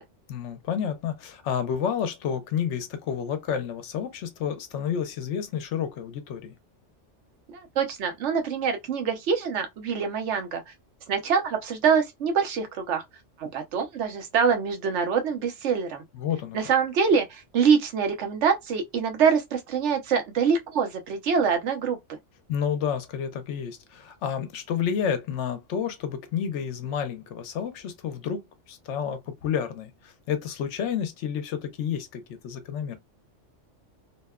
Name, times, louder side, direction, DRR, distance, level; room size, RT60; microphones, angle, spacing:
voice 1, 0.3-6.5 16.1-16.7 22.5-28.4 28.7-33.0, left 8 dB, 75° left, 0.9 m, -30 dB
voice 2, 7.5-10.6 11.1-13.0 13.4-16.0 16.5-22.2, right 6 dB, 70° right, 1.0 m, -25 dB
2.7 x 2.1 x 2.2 m
omnidirectional pair, 1.3 m